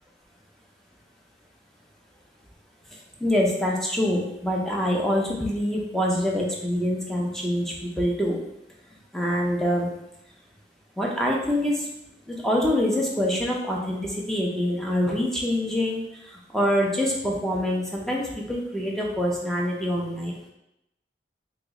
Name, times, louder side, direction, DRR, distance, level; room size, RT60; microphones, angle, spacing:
voice 1, 2.9-8.4 9.1-9.9 11.0-11.9 12.3-20.5, equal, ahead, -3 dB, 0.5 m, -25 dB
3.0 x 3.0 x 3.6 m, 0.85 s
head